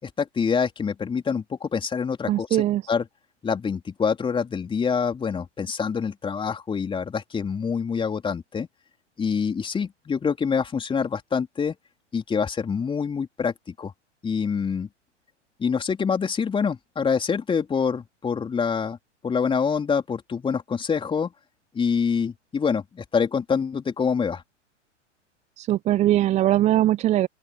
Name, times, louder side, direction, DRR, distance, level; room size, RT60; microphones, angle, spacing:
voice 1, 0.0-2.5 2.9-3.0 3.4-8.7 9.2-11.7 12.1-13.9 14.2-14.9 15.6-19.0 19.2-21.3 21.7-24.4, left 6 dB, 15° left, 4.3 m, -26 dB
voice 2, 2.3-2.8 25.6-27.3, right 13 dB, 20° right, 0.8 m, -21 dB
open air
figure-of-eight pair, 100°, 36 cm